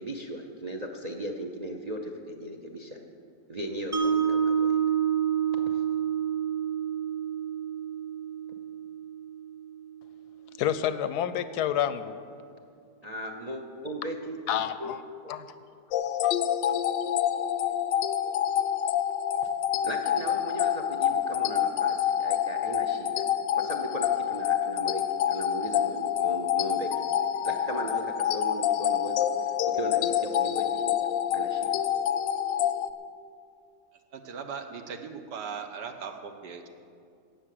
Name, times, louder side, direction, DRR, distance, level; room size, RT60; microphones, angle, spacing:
voice 1, 0.0-3.0 3.5-4.8 5.6-5.8 13.0-14.4 14.8-15.0 15.2-15.3 19.8-23.2 23.5-26.9 27.4-29.3 29.6-31.0 31.3-31.7, right 1 dB, 40° right, 3 dB, 0.5 m, -37 dB
Mallet percussion, 3.9-10.1, right 8 dB, 10° right, 1.0 m, -28 dB
voice 2, 10.6-12.1 14.5-15.0 15.3-15.5 16.2-16.4, left 10 dB, 75° left, 13 dB, 1.0 m, -28 dB
sound 1, 15.9-32.9, left 10 dB, 90° left, 1.3 m, -27 dB
voice 3, 34.1-36.7, right 6 dB, 75° right, 6 dB, 1.6 m, -39 dB
17.5 x 6.8 x 7.6 m, 2.4 s
omnidirectional pair, 1.9 m